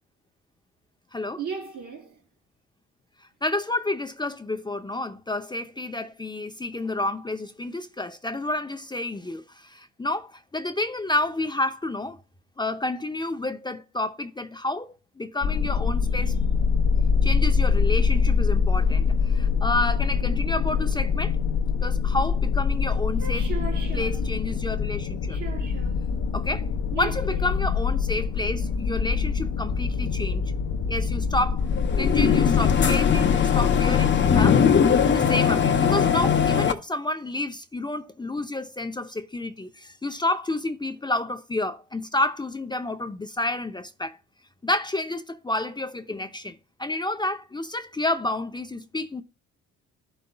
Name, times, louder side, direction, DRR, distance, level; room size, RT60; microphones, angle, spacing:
voice 1, 1.4-2.2 23.2-24.2 25.3-26.0 26.9-27.4, right 6 dB, 70° right, 3.3 m, -36 dB
voice 2, 3.2-12.2 12.6-16.4 17.2-21.4 21.8-23.5 23.9-25.4 26.3-26.7 26.9-30.4 30.9-31.7 32.0-34.6 35.1-44.2 44.6-49.2, left 2 dB, 15° left, 0.6 m, -30 dB
sound 1, 15.4-34.5, left 5 dB, 65° left, 1.0 m, -24 dB
sound 2, 31.7-36.7, left 7 dB, 40° left, 0.9 m, -20 dB
12.5 x 5.5 x 2.2 m
cardioid pair, 90°, 30 cm